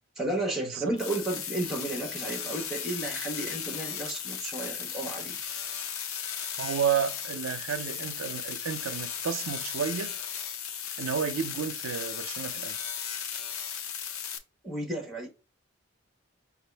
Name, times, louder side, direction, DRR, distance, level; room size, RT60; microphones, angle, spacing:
voice 1, 0.2-5.4 14.6-15.3, right 2 dB, ahead, 1.1 m, -33 dB
sound 1, 1.0-14.4, left 8 dB, 85° left, 0.6 m, -36 dB
voice 2, 6.6-10.1 11.0-12.9, right 7 dB, 80° right, 0.5 m, -31 dB
5.3 x 2.4 x 3.3 m
head